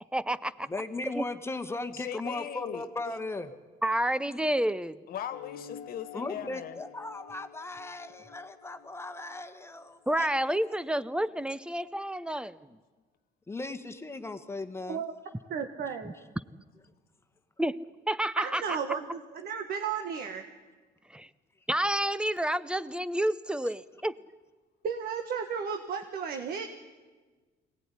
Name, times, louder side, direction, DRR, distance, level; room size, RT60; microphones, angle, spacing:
voice 1, 0.1-0.7 1.1-1.2 3.8-5.0 10.1-12.6 17.6-18.6 21.1-21.3 21.7-24.2, right 1 dB, 5° right, 16 dB, 0.7 m, -29 dB
voice 2, 0.7-3.5 6.1-10.3 13.5-15.0, left 2 dB, 15° left, 8 dB, 1.5 m, -37 dB
voice 3, 1.9-3.2 5.1-6.8, left 10 dB, 60° left, 11 dB, 1.6 m, -39 dB
sound 1, 5.3-10.3, left 7 dB, 90° left, 1.2 m, -49 dB
voice 4, 15.5-16.1 18.4-20.4 24.8-26.7, right 6 dB, 65° right, 6 dB, 1.6 m, -34 dB
22.5 x 18.0 x 9.9 m, 1.4 s
cardioid pair, 110°, 17 cm